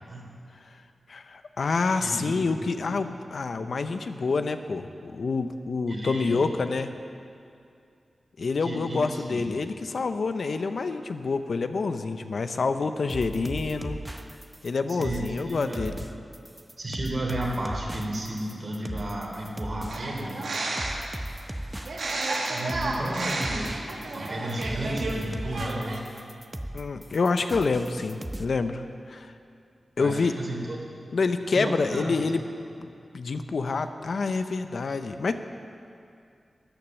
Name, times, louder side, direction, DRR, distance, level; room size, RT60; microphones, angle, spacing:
voice 1, 1.1-6.9 8.4-14.0 14.6-16.0 26.7-29.3 30.0-30.3 31.1-32.4 32.8-32.9 33.1-35.3, left 4 dB, 70° left, 9 dB, 0.6 m, -27 dB
voice 2, 2.0-2.6 3.0-3.1 5.9-6.4 8.6-9.5 14.9-15.9 16.8-20.4 22.4-23.8 24.1-26.0 30.0-30.8 31.5-32.2, right 1 dB, 45° right, -1 dB, 3.2 m, -33 dB
sound 1, 13.1-28.5, right 1 dB, 10° right, 0.8 m, -37 dB
sound 2, 19.9-21.1 21.8-25.2 25.4-26.0, right 2 dB, 80° right, 1.7 m, -31 dB
13.0 x 8.7 x 7.2 m, 2.4 s
cardioid pair, 60°, 0 cm